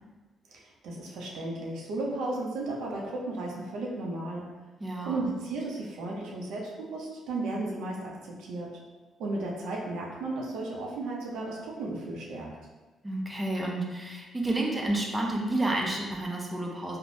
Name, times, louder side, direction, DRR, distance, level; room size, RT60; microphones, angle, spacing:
voice 1, 0.5-4.5 5.0-8.8 9.2-12.5, right 2 dB, 85° right, -2 dB, 0.5 m, -34 dB
voice 2, 4.8-5.3 13.0-17.0, right 2 dB, 15° right, -1 dB, 0.5 m, -30 dB
3.2 x 2.0 x 2.6 m, 1.2 s
cardioid pair, 90°, 0 cm